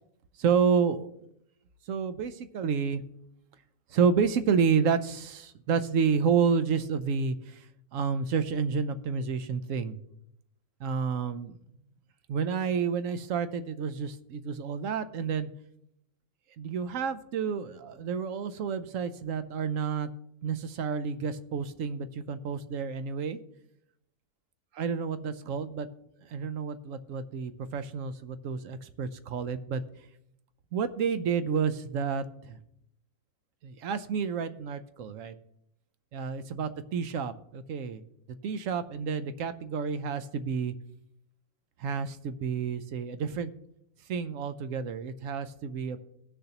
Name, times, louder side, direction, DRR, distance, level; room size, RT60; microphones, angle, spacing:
voice 1, 0.4-1.1 1.9-3.0 3.9-7.7 7.9-10.0 10.8-11.6 12.3-15.5 16.6-20.1 20.4-23.4 24.7-25.9 26.2-29.8 30.7-32.6 33.6-35.3 36.1-38.0 38.4-40.7 41.8-43.5 44.1-46.0, right 6 dB, 65° right, 12 dB, 1.0 m, -30 dB
18.0 x 6.6 x 2.9 m, 0.77 s
omnidirectional pair, 1.5 m